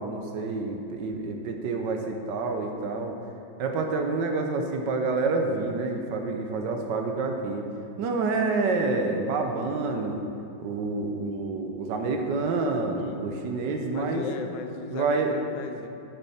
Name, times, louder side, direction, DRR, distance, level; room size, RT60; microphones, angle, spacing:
voice 1, 0.0-3.2 3.6-7.6 8.0-10.2 10.6-14.3 14.9-15.4, right 3 dB, 70° right, 4 dB, 1.3 m, -28 dB
voice 2, 12.7-13.3 13.9-15.9, left 6 dB, 75° left, 7 dB, 1.2 m, -37 dB
9.9 x 6.9 x 4.2 m, 2.6 s
omnidirectional pair, 2.1 m